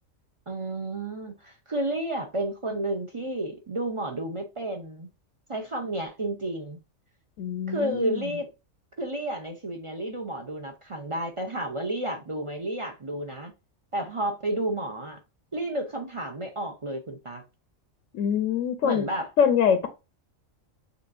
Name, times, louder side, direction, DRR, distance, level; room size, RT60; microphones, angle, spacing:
voice 1, 0.5-5.1 5.5-6.8 7.7-8.5 9.0-13.5 13.9-15.2 15.5-17.4 18.8-19.3, right 1 dB, 40° right, 0.5 m, -31 dB
voice 2, 7.4-8.4 18.1-19.1 19.4-19.9, left 7 dB, 80° left, 1.0 m, -24 dB
6.6 x 2.4 x 2.5 m
omnidirectional pair, 1.3 m